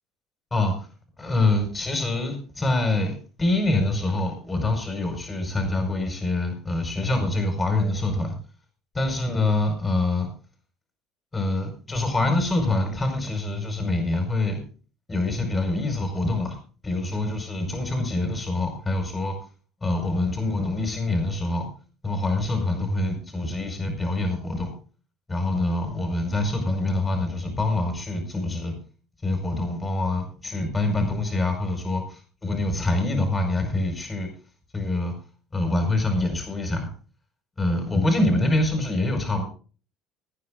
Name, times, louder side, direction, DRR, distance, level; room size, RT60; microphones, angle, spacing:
voice 1, 1.2-8.3 8.9-10.3 11.3-14.6 15.1-16.6 16.8-19.3 19.8-21.6 22.0-24.7 25.3-28.7 29.2-34.3 34.7-35.1 35.5-36.9 37.6-39.4, left 2 dB, 20° left, 5 dB, 5.0 m, -25 dB
18.0 x 9.7 x 3.7 m, 0.38 s
hypercardioid pair, 65°, 0 cm